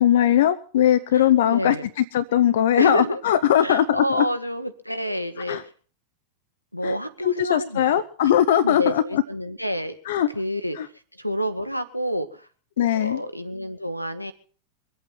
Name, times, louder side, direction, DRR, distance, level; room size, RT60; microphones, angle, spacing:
voice 1, 0.0-4.2 5.5-5.6 6.8-6.9 7.2-9.2 10.1-10.3 10.8-10.9 12.8-13.2, left 11 dB, 55° left, 12 dB, 0.7 m, -20 dB
voice 2, 1.1-1.9 2.8-3.2 3.6-5.7 6.7-8.0 8.6-9.9 10.3-10.8 11.1-12.5 13.0-14.3, equal, 90° left, 10 dB, 1.3 m, -28 dB
23.5 x 8.6 x 5.8 m, 0.42 s
figure-of-eight pair, 90°, 0 cm